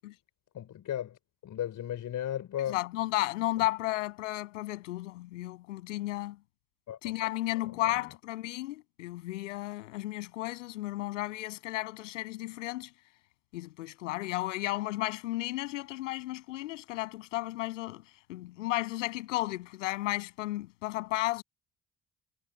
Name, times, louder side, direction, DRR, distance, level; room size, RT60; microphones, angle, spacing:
voice 1, 0.5-2.8 3.6-3.7 6.9-7.1 7.6-8.0, left 11 dB, 55° left, 3.9 m, -36 dB
voice 2, 2.7-6.4 7.0-12.9 13.5-18.0 18.3-21.4, left 17 dB, 75° left, 7.3 m, -33 dB
figure-of-eight pair, 45°, 37 cm